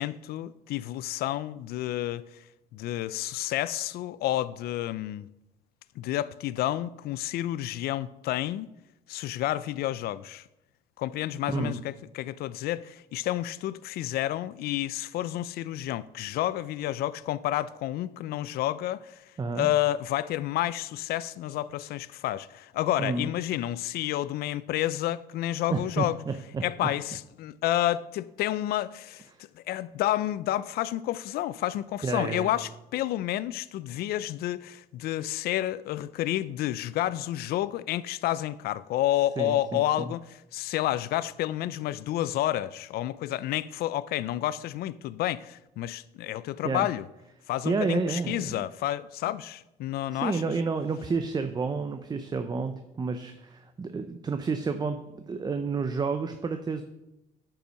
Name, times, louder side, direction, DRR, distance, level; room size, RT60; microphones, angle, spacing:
voice 1, 0.0-2.2 2.7-5.3 6.0-8.7 9.1-10.4 11.0-19.2 19.5-26.2 26.6-29.3 29.6-47.0 47.5-50.4, left 14 dB, 65° left, 0.4 m, -30 dB
voice 2, 19.4-19.7 23.0-23.3 25.7-26.6 32.0-32.5 39.4-40.1 46.6-46.9 47.6-48.6 50.1-56.8, right 4 dB, 25° right, 0.6 m, -30 dB
8.6 x 5.7 x 6.3 m
cardioid pair, 110°, 17 cm